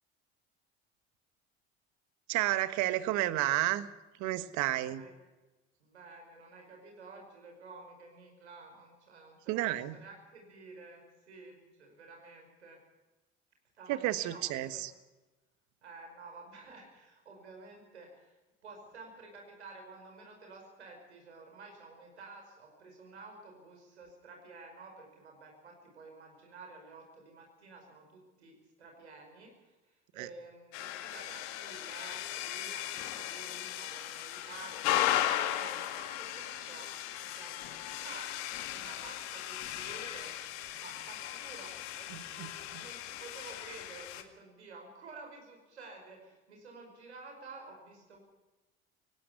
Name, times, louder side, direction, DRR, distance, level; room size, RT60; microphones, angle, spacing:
voice 1, 2.3-3.9 4.2-5.0 9.5-10.0 13.9-14.9 30.2-30.3 42.1-42.8, right 15 dB, 60° right, 14 dB, 1.3 m, -31 dB
voice 2, 4.7-5.1 5.8-12.8 13.8-14.8 15.8-29.8 30.1-36.9 37.2-38.4 38.7-40.4 40.8-48.2, right 3 dB, 90° right, 2 dB, 5.4 m, -51 dB
sound 1, 30.7-44.2, left 13 dB, 70° left, 1.9 m, -36 dB
18.5 x 16.5 x 9.6 m, 1.1 s
hypercardioid pair, 65°, 33 cm